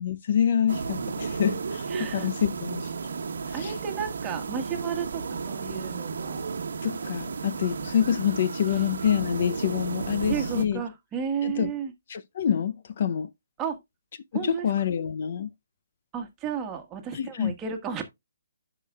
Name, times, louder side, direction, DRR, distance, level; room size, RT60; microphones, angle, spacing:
voice 1, 0.0-2.9 3.6-3.7 6.8-10.8 11.4-11.7 12.1-13.3 14.3-15.5 17.1-17.5, left 9 dB, 50° left, 0.5 m, -26 dB
sound 1, 0.7-10.7, right 5 dB, 70° right, 1.1 m, -33 dB
voice 2, 1.9-2.3 3.5-6.4 10.2-11.9 13.6-13.8 14.3-14.7 16.1-18.0, right 7 dB, 15° right, 1.5 m, -33 dB
11.5 x 5.0 x 2.3 m
hypercardioid pair, 160°, 0 cm